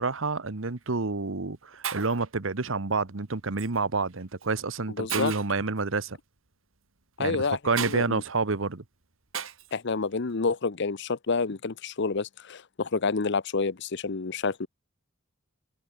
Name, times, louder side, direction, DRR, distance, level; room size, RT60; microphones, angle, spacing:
voice 1, 0.0-6.2 7.2-8.8, right 3 dB, 70° right, 1.1 m, -29 dB
Shatter, 0.6-0.8 1.5-1.6 1.8-2.3 3.6-3.8 4.4-4.5 5.1-5.6 7.8-8.0 9.3-9.7, right 8 dB, 85° right, 3.2 m, -34 dB
voice 2, 4.9-5.3 7.2-8.2 9.7-14.7, left 4 dB, 60° left, 0.8 m, -29 dB
head